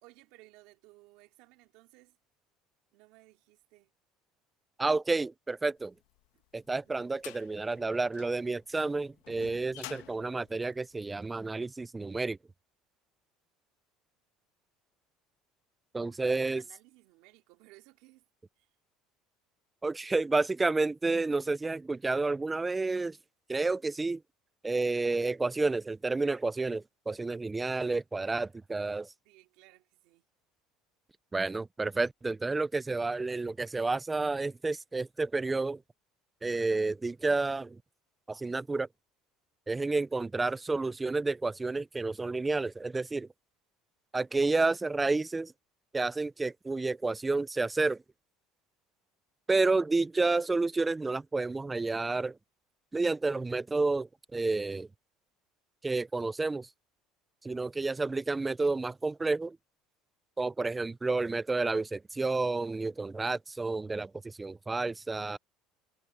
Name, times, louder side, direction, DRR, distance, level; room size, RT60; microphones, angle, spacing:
voice 1, 0.0-2.2 2.9-3.9 6.3-6.4 6.8-6.9 7.4-7.5 7.8-7.9 16.0-18.2 18.6-18.7 29.2-30.2, right 21 dB, 75° right, 3.4 m, -59 dB
voice 2, 4.8-5.9 6.5-12.4 15.9-16.6 19.8-23.2 23.5-24.2 24.6-29.1 31.3-35.8 36.4-37.8 38.3-38.9 39.7-43.3 44.1-45.5 45.9-48.0 49.5-52.4 52.9-54.9 55.8-56.7 57.4-59.6 60.4-65.4, right 3 dB, 10° right, 0.4 m, -30 dB
sound 1, 6.2-11.5, left 19 dB, 85° left, 1.1 m, -50 dB
cardioid pair, 140°, 0 cm